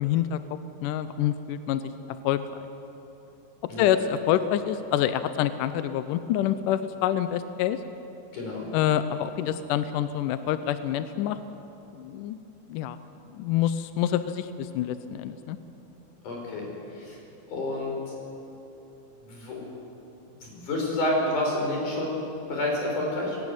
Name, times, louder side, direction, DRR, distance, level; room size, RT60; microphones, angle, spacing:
voice 1, 0.0-1.8 2.2-2.4 3.8-7.8 8.7-11.4 11.9-12.4 12.7-13.0 13.3-15.6, left 11 dB, 80° left, 11 dB, 1.9 m, -27 dB
voice 2, 8.3-8.7 16.2-17.2 17.5-18.0 19.2-19.6 20.4-22.2 22.5-23.4, left 1 dB, 55° left, -1 dB, 6.1 m, -29 dB
19.5 x 17.0 x 9.4 m, 3.0 s
omnidirectional pair, 4.4 m